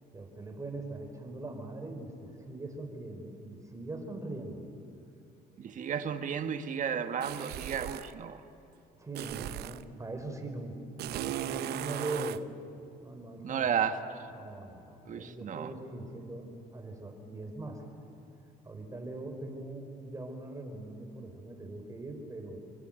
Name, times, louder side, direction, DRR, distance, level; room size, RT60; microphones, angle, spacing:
voice 1, 0.1-4.6 9.0-10.8 11.1-12.4 13.0-13.7 14.3-17.9 18.6-22.6, right 2 dB, 20° right, 4 dB, 4.7 m, -41 dB
voice 2, 5.6-8.4 13.4-14.0 15.1-15.7, right 8 dB, 50° right, 8 dB, 1.6 m, -33 dB
sound 1, 7.2-8.2 9.1-9.9 11.0-12.4, right 13 dB, 75° right, 0.8 m, -37 dB
27.5 x 23.5 x 9.0 m, 2.9 s
cardioid pair, 110°, 17 cm